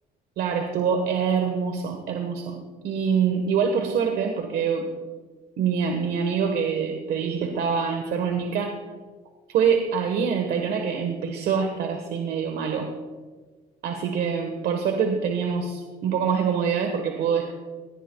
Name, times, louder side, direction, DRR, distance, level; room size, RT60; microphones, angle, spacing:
voice 1, 0.4-2.6 2.8-4.9 5.6-8.8 9.5-12.9 13.8-17.5, right 6 dB, 70° right, 4 dB, 1.3 m, -25 dB
18.5 x 12.5 x 2.3 m, 1.4 s
cardioid pair, 110°, 17 cm